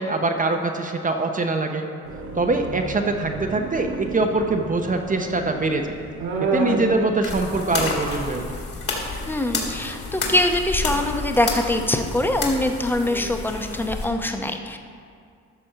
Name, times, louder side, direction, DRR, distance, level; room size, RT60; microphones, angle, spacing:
voice 1, 0.0-1.9 2.4-5.9 6.4-8.4, right 3 dB, 25° right, 4 dB, 0.8 m, -23 dB
sound 1, 2.0-7.7, right 3 dB, 90° right, 1.3 m, -30 dB
sound 2, 7.2-14.0, left 3 dB, 50° left, 2.3 m, -30 dB
voice 2, 9.3-14.8, left 1 dB, 5° left, 5 dB, 0.8 m, -23 dB
13.0 x 4.3 x 6.6 m, 2.2 s
cardioid pair, 90°, 30 cm